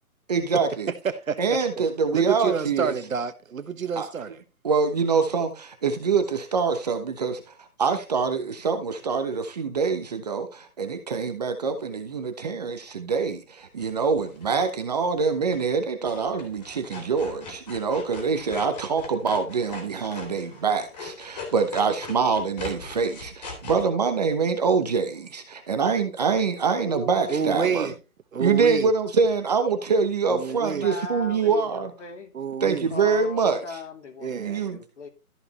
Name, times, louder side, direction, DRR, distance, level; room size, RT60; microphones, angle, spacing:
voice 1, 0.3-0.9 1.4-2.9 4.0-4.1 4.6-27.9 28.4-31.9 32.6-33.8 34.3-34.8, right 5 dB, 30° right, 1.1 m, -25 dB
voice 2, 1.0-1.4 1.8-1.9 2.1-4.4 27.3-27.9 28.3-28.9 30.3-30.9 32.3-32.9 34.2-34.7, right 6 dB, 65° right, 1.4 m, -28 dB
sound 1, 13.8-14.7 15.5-15.8 16.1-23.8, left 3 dB, 30° left, 3.2 m, -40 dB
voice 3, 26.7-27.9 30.5-32.3 32.9-35.1, left 3 dB, 55° left, 3.2 m, -38 dB
13.5 x 5.0 x 4.2 m
hypercardioid pair, 165°, 44 cm